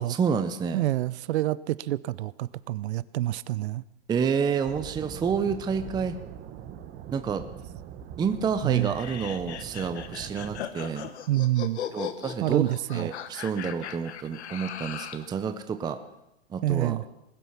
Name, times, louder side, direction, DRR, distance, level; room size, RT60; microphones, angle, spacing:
voice 1, 0.0-0.8 4.1-6.1 7.1-7.4 8.2-11.1 11.9-12.6 12.9-16.0 16.5-17.0, right 6 dB, 10° right, 9 dB, 0.6 m, -29 dB
voice 2, 0.7-3.8 8.6-8.9 11.3-11.8 12.4-13.1 16.6-17.0, right 15 dB, 75° right, 20 dB, 0.6 m, -27 dB
sound 1, 4.7-10.6, right 9 dB, 30° right, 1.1 m, -42 dB
sound 2, 8.7-15.3, left 9 dB, 80° left, 1.3 m, -38 dB
20.0 x 8.1 x 5.7 m, 0.89 s
hypercardioid pair, 130°, 33 cm